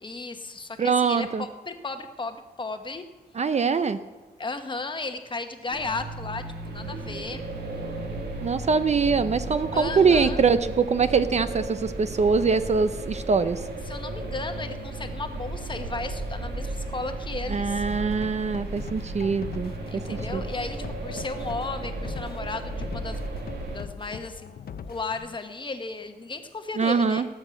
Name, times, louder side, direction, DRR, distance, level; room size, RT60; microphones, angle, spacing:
voice 1, 0.0-3.0 4.4-7.5 9.7-10.6 13.8-17.8 19.9-23.2 23.7-24.5 24.9-27.3, left 3 dB, 25° left, 7 dB, 1.1 m, -35 dB
voice 2, 0.8-1.4 3.4-4.0 8.4-13.6 17.5-20.4 26.8-27.3, right 5 dB, 40° right, 12 dB, 0.5 m, -23 dB
sound 1, 5.7-23.8, right 2 dB, 70° right, 2.2 m, -34 dB
sound 2, 17.8-25.4, left 7 dB, 60° left, 0.7 m, -42 dB
17.5 x 6.4 x 7.7 m, 1.3 s
wide cardioid pair, 115°, 18 cm